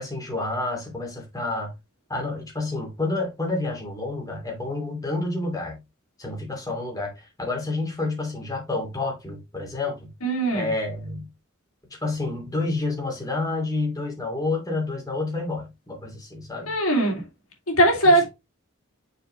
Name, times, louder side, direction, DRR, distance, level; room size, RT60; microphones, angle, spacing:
voice 1, 0.0-1.7 2.1-5.8 6.2-10.1 10.5-11.3 12.0-16.8, left 2 dB, 15° left, 2.8 m, -29 dB
voice 2, 10.2-10.7 16.6-17.2 17.7-18.3, right 1 dB, 80° left, 2.8 m, -20 dB
6.7 x 4.8 x 3.3 m
head